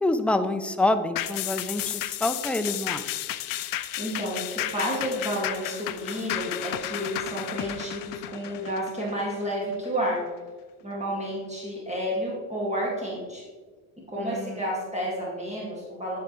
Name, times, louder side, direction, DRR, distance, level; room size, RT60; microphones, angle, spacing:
voice 1, 0.0-3.1 14.2-14.6, left 2 dB, 5° left, 10 dB, 0.4 m, -27 dB
sound 1, 1.2-9.9 10.3-10.4, left 14 dB, 55° left, 0.5 m, -33 dB
voice 2, 4.0-10.3 10.8-13.4 14.1-16.2, equal, 15° right, -4 dB, 2.0 m, -30 dB
10.5 x 4.7 x 3.1 m, 1.4 s
supercardioid pair, 75°, 41 cm